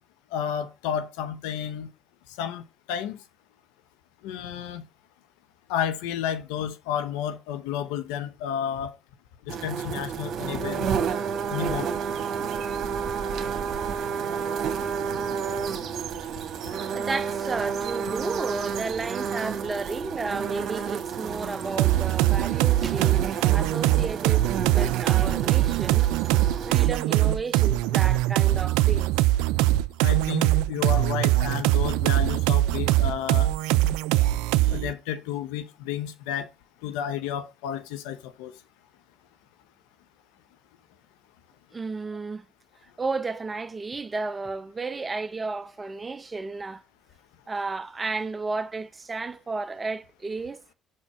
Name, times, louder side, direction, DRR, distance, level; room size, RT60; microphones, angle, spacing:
voice 1, 0.3-1.9 2.4-2.6 2.9-3.2 4.2-4.9 5.7-8.9 9.5-10.9 11.5-11.9 30.0-33.5 34.7-36.5 36.8-38.5, left 9 dB, 90° left, 0.8 m, -31 dB
sound 1, 9.5-26.9, right 6 dB, 65° right, 1.3 m, -30 dB
voice 2, 16.9-26.1 26.7-29.1 41.7-42.4 43.0-46.8 47.5-50.6, right 3 dB, 25° right, 0.7 m, -33 dB
sound 2, 21.8-34.9, right 16 dB, 85° right, 0.3 m, -22 dB
6.0 x 4.5 x 5.6 m
supercardioid pair, 70°, 0 cm